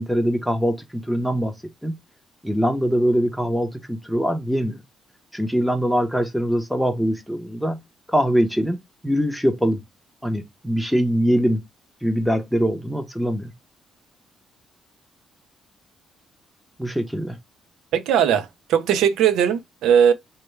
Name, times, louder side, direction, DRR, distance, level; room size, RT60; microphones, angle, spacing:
voice 1, 0.0-1.5 1.8-2.0 2.4-4.8 5.3-7.8 8.1-8.8 9.0-9.8 10.2-11.6 12.0-13.5 16.8-17.4, equal, ahead, 0.7 m, -22 dB
voice 2, 17.9-20.1, right 8 dB, 85° right, 0.5 m, -19 dB
3.1 x 2.2 x 3.1 m
cardioid pair, 90°, 0 cm